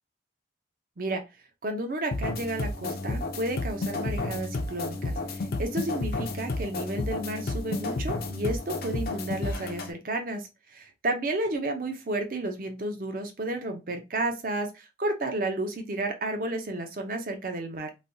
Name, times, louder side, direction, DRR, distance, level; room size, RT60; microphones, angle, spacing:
voice 1, 1.6-17.9, right 2 dB, 45° right, 5 dB, 0.6 m, -32 dB
sound 1, 2.1-9.9, left 2 dB, 50° left, 0.4 m, -31 dB
3.2 x 2.2 x 2.6 m, 0.26 s
head